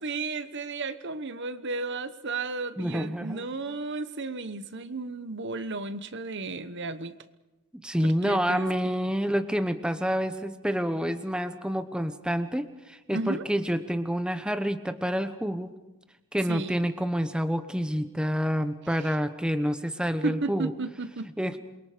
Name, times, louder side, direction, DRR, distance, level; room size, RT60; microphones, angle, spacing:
voice 1, 0.0-7.1 8.0-8.7 13.1-13.4 16.5-16.8 19.0-19.1 20.2-21.3, right 3 dB, 55° right, 12 dB, 1.1 m, -33 dB
voice 2, 2.8-3.4 7.7-15.7 16.3-20.7 21.4-21.6, equal, 5° right, 9 dB, 1.0 m, -28 dB
28.0 x 23.0 x 5.1 m, 1.1 s
head